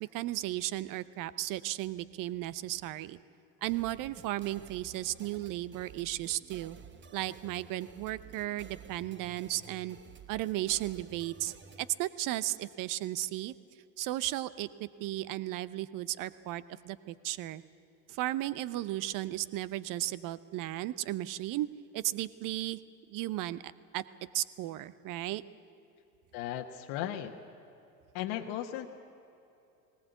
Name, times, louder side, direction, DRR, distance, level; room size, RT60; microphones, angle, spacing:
voice 1, 0.0-3.2 3.6-6.8 7.1-10.0 10.3-13.5 14.0-17.6 18.1-21.7 21.9-22.8 23.1-23.6 23.9-24.0 24.3-25.4, right 15 dB, 40° right, 17 dB, 0.9 m, -35 dB
sound 1, 3.6-12.0, right 6 dB, 25° right, 1.2 m, -53 dB
voice 2, 26.3-27.3 28.1-28.9, left 11 dB, 50° left, 3 dB, 1.3 m, -36 dB
19.5 x 19.0 x 8.2 m, 2.8 s
hypercardioid pair, 85°, 48 cm